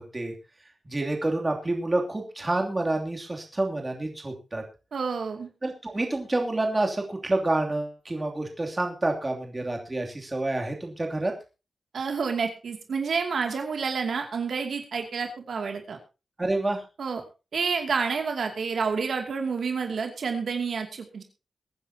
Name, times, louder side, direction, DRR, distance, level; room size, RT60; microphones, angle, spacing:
voice 1, 0.8-4.6 5.6-11.3 16.4-16.8, right 2 dB, 25° right, 1 dB, 2.9 m, -28 dB
voice 2, 4.9-5.5 11.9-16.0 17.0-17.2 17.5-21.2, right 5 dB, 75° right, 3 dB, 2.5 m, -29 dB
22.5 x 9.9 x 2.9 m, 0.30 s
wide cardioid pair, 100°, 0 cm